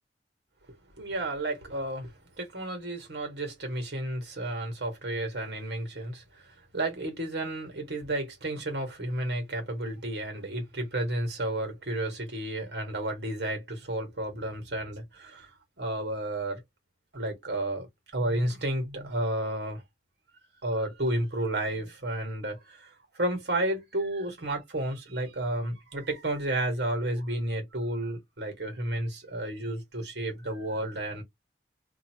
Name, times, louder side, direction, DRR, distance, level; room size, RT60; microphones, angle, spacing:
voice 1, 1.0-2.1 2.4-6.2 6.7-15.5 15.8-16.6 17.1-19.8 20.6-22.8 23.2-31.2, right 1 dB, 65° right, 1.5 m, -32 dB
2.7 x 2.7 x 2.8 m
head